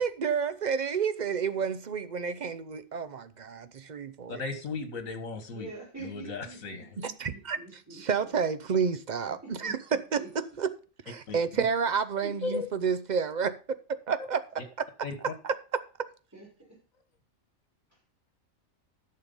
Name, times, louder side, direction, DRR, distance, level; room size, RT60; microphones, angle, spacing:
voice 1, 0.0-4.4 7.0-7.6 7.9-10.7 11.1-13.6 14.1-14.4 15.4-15.5, right 6 dB, 45° right, 0.6 m, -30 dB
voice 2, 4.3-5.7 6.0-6.9 11.3-11.4 12.4-12.7 15.0-15.3, left 4 dB, 75° left, 2.0 m, -36 dB
voice 3, 5.5-8.3 9.4-10.3 12.2-12.6 16.3-16.8 17.9-18.0, right 3 dB, 10° right, 5.6 m, -46 dB
10.5 x 6.6 x 5.4 m
omnidirectional pair, 1.4 m